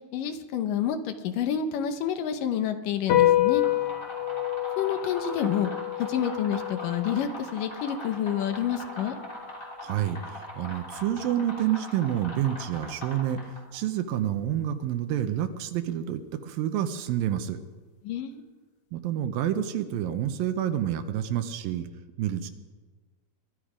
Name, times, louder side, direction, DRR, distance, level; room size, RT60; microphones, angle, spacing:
voice 1, 0.1-3.6 4.8-5.7 6.0-9.2 18.0-18.4, left 9 dB, 70° left, 8 dB, 2.2 m, -28 dB
sound 1, 3.1-9.8, left 14 dB, 85° left, 1.3 m, -28 dB
sound 2, 3.4-13.7, left 1 dB, 25° left, 2.7 m, -41 dB
voice 2, 9.8-17.6 18.9-21.9 22.2-22.5, right 11 dB, 75° right, 9 dB, 2.3 m, -28 dB
23.0 x 12.0 x 5.0 m, 1.4 s
omnidirectional pair, 4.5 m